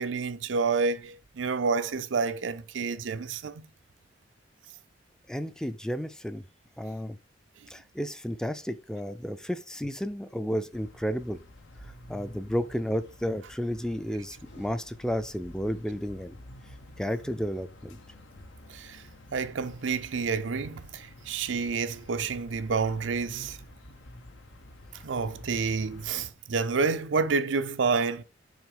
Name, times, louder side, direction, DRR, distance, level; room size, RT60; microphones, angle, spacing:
voice 1, 0.0-3.6 18.7-19.0 19.3-23.6 25.0-28.2, right 5 dB, 85° right, 0.5 m, -29 dB
voice 2, 5.3-6.4 6.8-7.2 7.7-11.4 12.1-16.4 17.0-18.0, equal, 5° left, 0.4 m, -32 dB
sound 1, 10.7-26.3, left 1 dB, 85° left, 0.9 m, -50 dB
sound 2, 14.4-15.7, equal, 65° left, 2.9 m, -56 dB
6.3 x 4.3 x 4.9 m
head